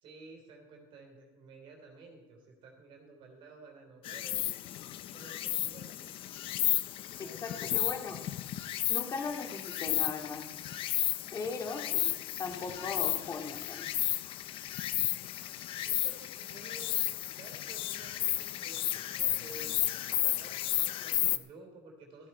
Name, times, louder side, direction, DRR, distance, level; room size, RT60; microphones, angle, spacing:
voice 1, 0.0-4.7 5.1-6.2 7.1-8.1 15.9-19.7 20.2-22.3, right 3 dB, 45° right, 2 dB, 3.8 m, -52 dB
Insect, 4.0-21.4, left 13 dB, 45° left, 0.7 m, -33 dB
voice 2, 7.2-8.2 8.9-10.5 11.3-12.1 12.4-13.9, left 4 dB, 25° left, 2 dB, 2.4 m, -38 dB
sound 1, 12.4-17.3, left 7 dB, 85° left, 2.4 m, -56 dB
14.5 x 14.5 x 4.4 m, 1.1 s
cardioid pair, 150°, 12 cm